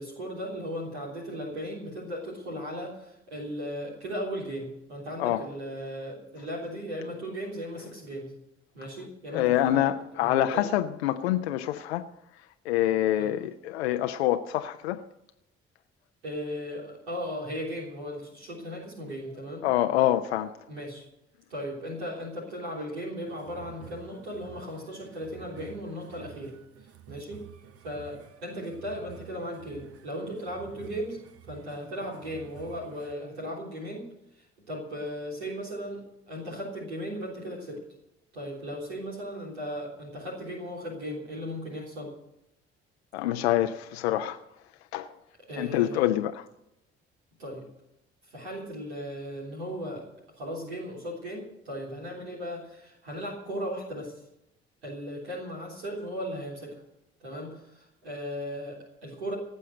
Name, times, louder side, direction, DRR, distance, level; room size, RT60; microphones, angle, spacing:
voice 1, 0.0-8.3 8.7-9.9 10.2-10.7 13.2-13.3 16.2-19.7 20.7-21.0 21.5-26.5 27.1-27.4 27.8-31.2 31.5-34.1 34.4-37.8 38.3-42.1 45.5-46.1 47.4-47.7 48.3-50.0 50.4-54.1 54.8-56.8 57.2-59.3, equal, 80° right, 3.5 m, -37 dB
voice 2, 9.3-12.1 12.4-15.0 19.6-20.6 43.1-44.4 44.9-45.1 45.6-46.5, left 13 dB, 80° left, 0.6 m, -26 dB
sound 1, 23.2-33.1, right 10 dB, 50° right, 1.0 m, -50 dB
18.0 x 7.5 x 7.7 m
figure-of-eight pair, 45°, 31 cm